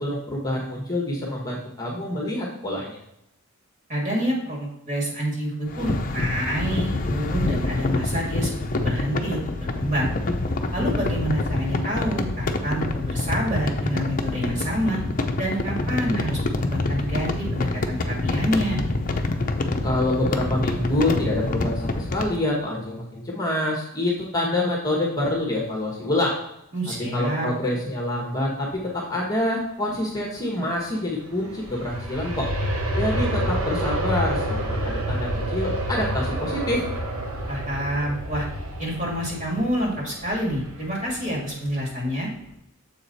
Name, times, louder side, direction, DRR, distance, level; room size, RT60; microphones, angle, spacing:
voice 1, 0.0-3.0 19.8-26.4 27.1-32.5 33.0-36.9, left 1 dB, 15° left, -2 dB, 1.1 m, -26 dB
voice 2, 3.9-10.1 10.7-15.0 15.4-18.8 26.7-27.5 37.5-38.5 38.8-42.3, equal, 35° right, -2 dB, 2.1 m, -27 dB
sound 1, 5.7-22.4, left 2 dB, 40° left, 0.6 m, -26 dB
Aircraft, 31.1-41.9 42.4-42.5, right 1 dB, 80° right, 1.3 m, -29 dB
7.1 x 4.9 x 4.1 m, 0.81 s
head